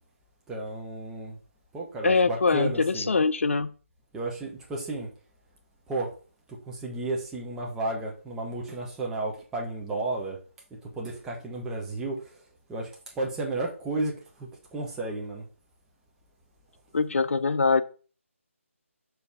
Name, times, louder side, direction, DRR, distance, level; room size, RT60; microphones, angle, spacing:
voice 1, 0.5-1.4 1.7-3.1 4.1-5.1 5.9-6.1 6.5-10.4 10.8-12.4 12.7-12.9 13.1-15.5, right 2 dB, 5° right, 1.0 m, -33 dB
voice 2, 2.0-3.7 16.9-17.8, left 4 dB, 65° left, 0.5 m, -23 dB
6.3 x 4.5 x 3.6 m
figure-of-eight pair, 160°, 8 cm